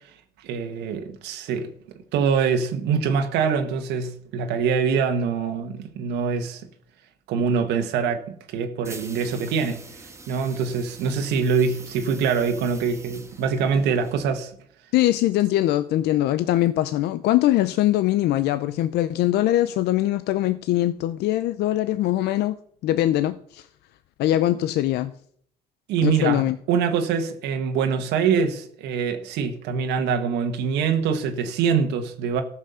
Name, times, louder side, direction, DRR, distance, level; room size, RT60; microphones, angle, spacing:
voice 1, 0.4-1.7 2.1-6.6 7.3-9.8 10.3-14.5 25.9-32.4, right 6 dB, 85° right, 1.5 m, -24 dB
sound 1, 8.8-14.5, right 3 dB, 15° right, 1.4 m, -44 dB
voice 2, 14.9-22.6 22.8-23.7 24.2-25.1 26.0-26.6, left 14 dB, 80° left, 0.6 m, -22 dB
14.0 x 5.9 x 6.9 m
cardioid pair, 110°, 17 cm